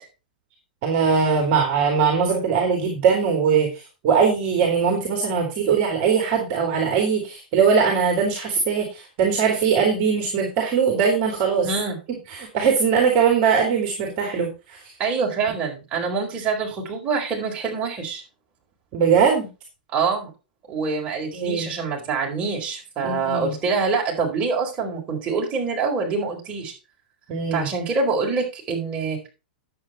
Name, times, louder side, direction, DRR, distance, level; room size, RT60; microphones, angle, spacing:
voice 1, 0.8-11.7 12.3-14.8 18.9-19.5 21.3-21.7 23.0-23.5 27.3-27.7, right 6 dB, 40° right, 1 dB, 3.0 m, -21 dB
voice 2, 11.6-12.0 15.0-18.2 19.9-20.3 20.7-26.7 27.5-29.3, right 4 dB, 25° right, 0 dB, 4.4 m, -25 dB
10.0 x 7.8 x 4.3 m, 0.30 s
figure-of-eight pair, 100°, 5 cm